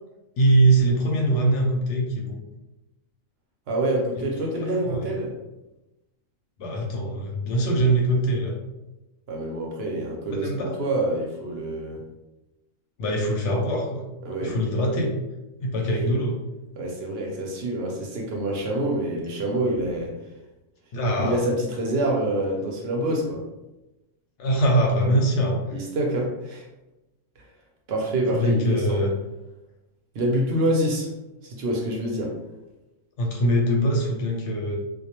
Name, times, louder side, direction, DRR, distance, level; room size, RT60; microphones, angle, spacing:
voice 1, 0.4-2.4 4.2-4.3 4.6-5.1 6.6-8.6 10.4-10.8 13.0-14.1 14.4-15.2 15.6-16.4 20.9-21.4 24.4-25.6 28.3-29.1 33.2-34.8, right 1 dB, 70° left, 0 dB, 0.8 m, -22 dB
voice 2, 3.7-5.3 9.3-12.0 14.2-14.6 16.8-20.1 21.2-23.4 25.7-26.6 27.9-29.0 30.1-31.1 31.4-32.3, right 1 dB, 65° right, -1 dB, 0.7 m, -26 dB
2.3 x 2.1 x 2.8 m, 1.0 s
omnidirectional pair, 1.4 m